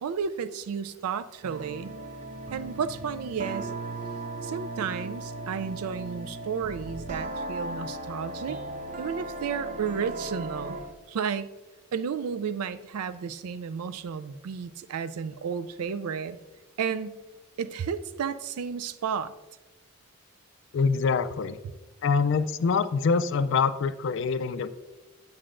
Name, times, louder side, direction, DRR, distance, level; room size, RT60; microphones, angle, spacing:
voice 1, 0.0-1.9 2.5-3.7 4.4-8.6 9.0-10.8 11.1-11.5 11.9-16.4 16.8-17.2 17.6-19.3, right 6 dB, 85° right, 13 dB, 0.4 m, -32 dB
sound 1, 1.4-10.9, right 2 dB, 35° right, 0.6 m, -37 dB
voice 2, 20.7-21.6 22.0-24.8, left 5 dB, 55° left, 14 dB, 0.3 m, -25 dB
8.7 x 7.4 x 2.5 m, 1.2 s
head